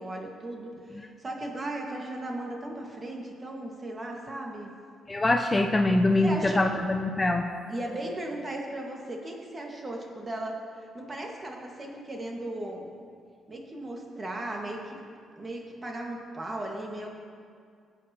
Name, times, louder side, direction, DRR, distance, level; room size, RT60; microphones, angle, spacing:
voice 1, 0.0-4.7 6.2-6.6 7.7-12.9 13.5-15.0 15.4-17.1, right 1 dB, 30° right, 0 dB, 1.7 m, -36 dB
voice 2, 5.1-7.5, left 2 dB, 20° left, 4 dB, 0.5 m, -24 dB
17.0 x 8.4 x 2.9 m, 2.2 s
cardioid pair, 90°, 0 cm